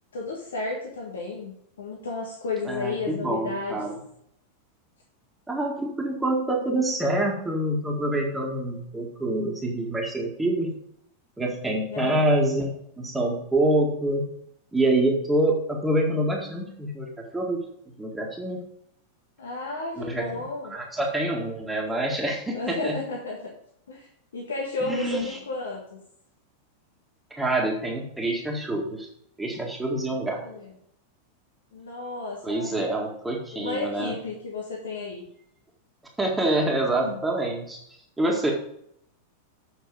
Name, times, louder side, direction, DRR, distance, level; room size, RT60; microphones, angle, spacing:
voice 1, 0.1-3.8 11.9-12.2 19.4-20.8 22.5-23.5 23.9-26.0 30.1-30.7 31.7-32.9 33.5-35.2 36.9-37.2, left 3 dB, 65° left, -1 dB, 1.6 m, -33 dB
voice 2, 2.6-3.9 5.5-10.7 11.4-12.7 13.0-14.2 14.7-17.6 18.0-18.6 20.0-20.2 20.7-22.9 24.9-25.4 27.3-29.1 29.4-30.4 32.4-34.1 36.2-37.8 38.2-38.5, right 1 dB, 10° right, -1 dB, 1.8 m, -26 dB
8.2 x 5.9 x 5.1 m, 0.70 s
figure-of-eight pair, 90°, 0 cm